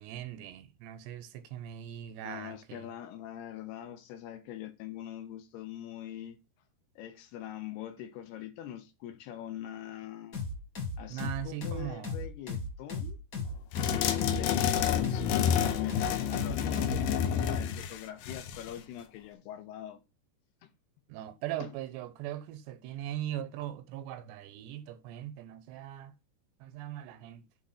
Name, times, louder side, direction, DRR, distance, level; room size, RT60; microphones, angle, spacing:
voice 1, 0.0-2.9 11.1-12.1 21.1-26.1 26.6-27.4, right 12 dB, 85° right, 2.9 m, -40 dB
voice 2, 2.2-6.4 7.0-10.4 11.0-13.2 13.9-20.0 20.6-20.7 21.6-21.8, left 11 dB, 75° left, 2.8 m, -43 dB
sound 1, 10.3-17.0, left 3 dB, 60° left, 0.9 m, -36 dB
sound 2, 13.7-18.8, left 9 dB, 90° left, 1.9 m, -29 dB
7.9 x 3.7 x 5.6 m
omnidirectional pair, 5.0 m